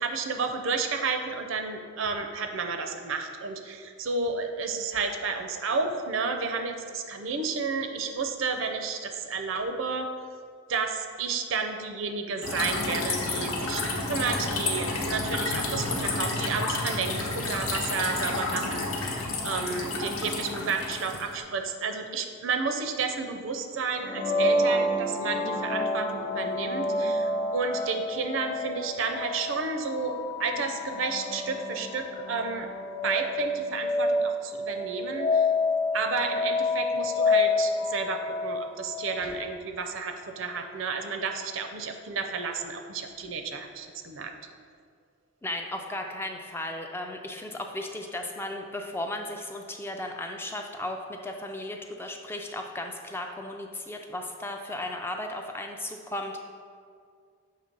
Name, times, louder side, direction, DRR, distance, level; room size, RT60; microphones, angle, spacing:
voice 1, 0.0-10.1 10.7-32.7 33.0-35.5 35.9-44.3, right 4 dB, 65° right, 5 dB, 0.5 m, -31 dB
sound 1, 12.4-21.3, left 2 dB, 90° left, 0.9 m, -30 dB
sound 2, 24.0-39.6, left 2 dB, 55° left, 0.6 m, -29 dB
voice 2, 45.4-56.4, left 1 dB, 10° left, 3 dB, 0.3 m, -35 dB
6.6 x 3.1 x 5.3 m, 2.1 s
head